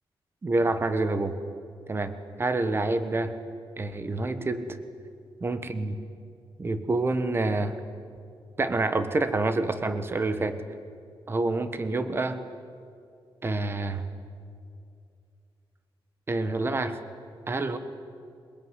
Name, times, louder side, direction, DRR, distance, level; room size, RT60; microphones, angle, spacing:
voice 1, 0.4-1.3 1.9-3.3 3.8-4.8 5.4-5.9 6.6-7.8 8.6-10.6 11.3-12.4 13.4-14.0 16.3-17.0 17.5-17.8, right 2 dB, 25° right, 10 dB, 1.3 m, -27 dB
22.0 x 21.0 x 9.7 m, 2.4 s
wide cardioid pair, 150°, 9 cm